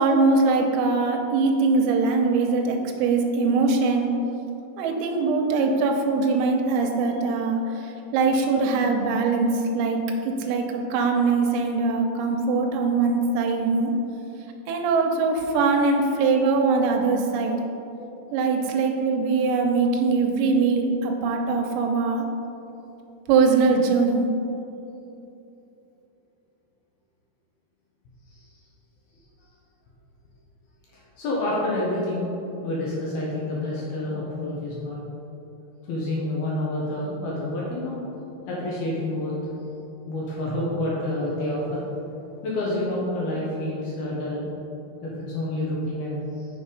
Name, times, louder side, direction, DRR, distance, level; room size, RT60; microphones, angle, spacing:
voice 1, 0.0-4.1 4.8-13.9 14.7-17.6 18.3-22.3 23.3-24.3, right 4 dB, 90° right, 3 dB, 3.4 m, -22 dB
voice 2, 30.9-32.3 32.6-35.0 35.8-38.0 38.5-39.3 40.1-41.8 42.4-44.5 45.0-46.5, left 1 dB, 70° left, -5 dB, 2.5 m, -28 dB
7.0 x 6.9 x 5.2 m, 2.9 s
omnidirectional pair, 5.9 m